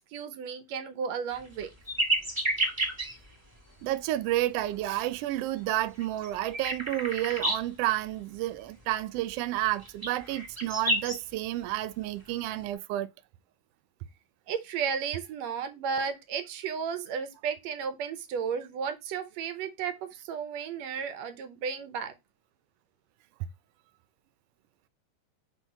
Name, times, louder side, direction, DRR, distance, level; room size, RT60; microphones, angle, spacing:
voice 1, 0.1-1.7 14.5-22.1, right 6 dB, 70° right, 2.0 m, -33 dB
sound 1, 1.3-3.3 3.9-4.0 4.4-4.5 4.8-5.0 5.6-7.7 9.6-11.2 12.3-12.6, right 1 dB, 15° right, 2.1 m, -30 dB
voice 2, 3.8-13.1, right 15 dB, 90° right, 1.4 m, -30 dB
4.6 x 4.4 x 5.5 m
omnidirectional pair, 3.3 m